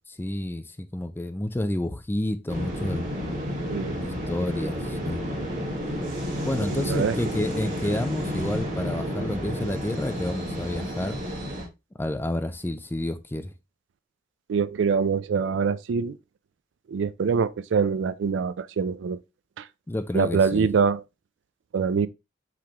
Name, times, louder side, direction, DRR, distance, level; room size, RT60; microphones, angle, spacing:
voice 1, 0.1-3.0 4.0-5.2 6.4-11.2 12.0-13.5 19.9-20.7, left 1 dB, 10° left, 0.4 m, -30 dB
sound 1, 2.5-11.6, equal, 45° right, 1.8 m, -31 dB
voice 2, 6.7-7.2 14.5-16.2 16.9-19.2 19.6-19.7 20.1-21.0 21.7-22.1, right 6 dB, 80° right, 0.4 m, -24 dB
4.9 x 3.5 x 2.9 m
head